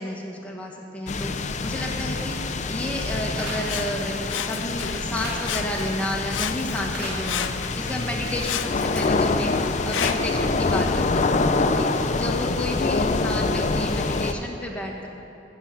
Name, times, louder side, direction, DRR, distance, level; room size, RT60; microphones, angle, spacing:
voice 1, 0.0-15.1, left 1 dB, 5° left, -1 dB, 1.6 m, -31 dB
sound 1, 1.1-14.3, left 3 dB, 40° left, 0.6 m, -26 dB
sound 2, 3.1-8.7, right 1 dB, 85° right, 3.6 m, -40 dB
Sawing, 3.6-5.1 5.4-6.0 6.3-8.0 8.4-10.4 11.1-11.2, left 9 dB, 85° left, 0.5 m, -32 dB
13.0 x 7.2 x 8.3 m, 2.9 s
head